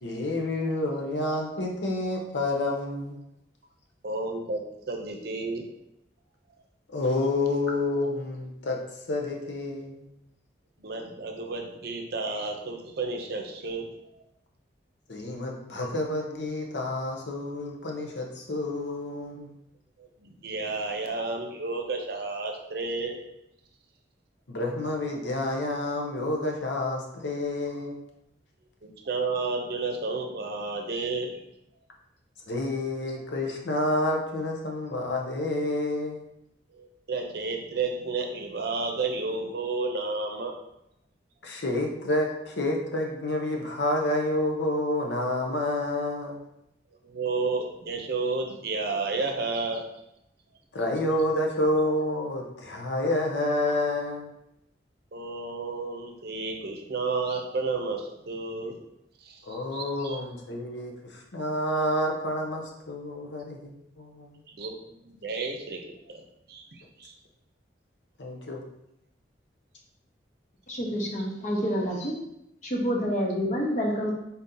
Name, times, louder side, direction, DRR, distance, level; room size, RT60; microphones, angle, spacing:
voice 1, 0.0-3.2 6.9-8.8 9.1-10.0 15.1-19.5 24.5-28.0 32.5-36.2 41.4-46.4 50.7-54.3 59.4-64.4 68.2-68.7, left 1 dB, 85° left, 0 dB, 0.8 m, -29 dB
voice 2, 4.0-4.6 4.9-5.7 10.8-13.9 20.0-23.2 28.8-31.3 36.8-40.6 47.0-49.8 55.1-58.7 59.2-60.2 64.5-66.2 66.5-67.1, right 3 dB, 60° right, 3 dB, 0.6 m, -32 dB
voice 3, 70.7-72.1 72.6-74.1, equal, 45° left, -1 dB, 0.8 m, -28 dB
4.0 x 2.7 x 3.8 m, 0.82 s
head